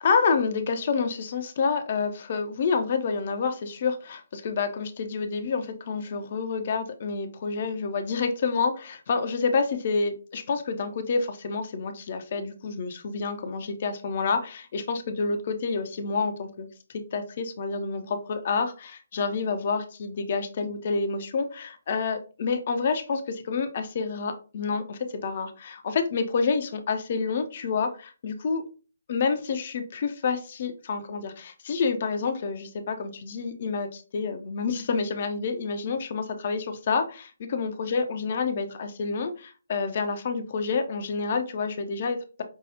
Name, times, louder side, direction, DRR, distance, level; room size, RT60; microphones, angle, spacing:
voice 1, 0.0-16.7 17.1-28.6 29.1-42.4, left 5 dB, 40° left, 7 dB, 0.5 m, -28 dB
5.4 x 2.3 x 2.8 m, 0.35 s
figure-of-eight pair, 140°, 0 cm